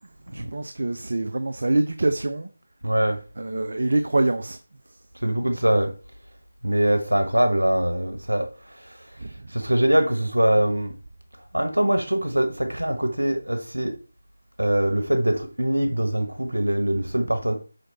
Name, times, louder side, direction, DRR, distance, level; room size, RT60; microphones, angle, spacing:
voice 1, 0.3-2.5 3.4-4.6 4.9-5.0 9.2-9.5, right 2 dB, 55° right, 0.6 m, -25 dB
voice 2, 2.8-3.2 5.2-5.9 6.6-8.5 9.5-10.9 11.5-13.9 14.6-17.6, right 1 dB, 80° right, 1.3 m, -22 dB
6.0 x 5.1 x 4.2 m
figure-of-eight pair, 160°, 0 cm